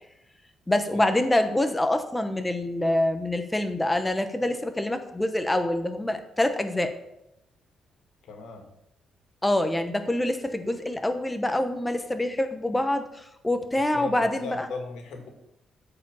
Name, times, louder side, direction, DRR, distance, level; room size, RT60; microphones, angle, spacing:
voice 1, 0.7-6.9 9.4-14.7, left 1 dB, 10° left, 8 dB, 0.8 m, -26 dB
voice 2, 8.3-8.7 13.9-15.3, left 4 dB, 80° left, 3 dB, 2.2 m, -38 dB
13.5 x 4.9 x 5.5 m, 0.84 s
cardioid pair, 175°, 0 cm